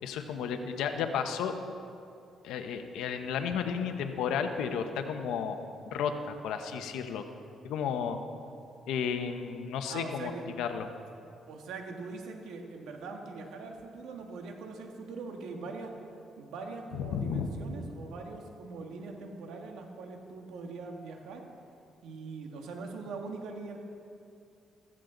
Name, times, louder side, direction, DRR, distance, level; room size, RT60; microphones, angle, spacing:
voice 1, 0.0-1.5 2.4-5.6 5.9-7.2 7.6-8.2 8.9-10.3 10.6-10.9 16.9-17.5, left 7 dB, 90° left, 6 dB, 1.0 m, -33 dB
voice 2, 9.9-10.5 11.5-15.9 16.4-21.4 22.0-23.8, right 4 dB, 85° right, 2 dB, 1.7 m, -42 dB
15.0 x 14.5 x 3.9 m, 2.5 s
cardioid pair, 90°, 0 cm